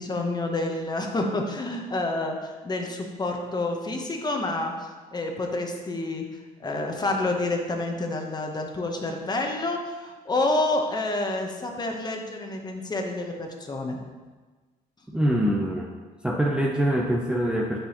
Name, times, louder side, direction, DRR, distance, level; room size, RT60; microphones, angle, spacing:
voice 1, 0.0-4.7 5.1-6.2 6.6-14.0, left 2 dB, 25° left, 2 dB, 1.0 m, -28 dB
voice 2, 15.1-15.9 16.2-17.8, equal, 5° right, -1 dB, 0.6 m, -24 dB
8.5 x 6.1 x 3.0 m, 1.3 s
cardioid pair, 110°, 17 cm